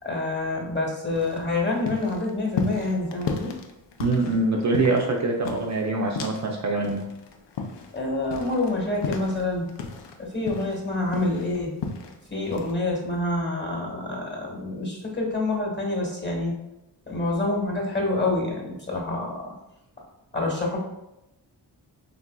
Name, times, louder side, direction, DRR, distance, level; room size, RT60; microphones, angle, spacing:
voice 1, 0.0-3.5 7.9-9.6 10.2-11.7 12.3-16.5 17.1-19.5 20.3-20.8, left 2 dB, 25° left, -2 dB, 1.0 m, -27 dB
sound 1, 1.1-6.6 6.8-10.2 10.5-12.2 12.5-12.7, left 5 dB, 80° left, 0.5 m, -34 dB
voice 2, 4.0-7.0, right 2 dB, 45° right, 0 dB, 0.5 m, -24 dB
3.5 x 2.5 x 2.2 m, 0.91 s
cardioid pair, 55°, 42 cm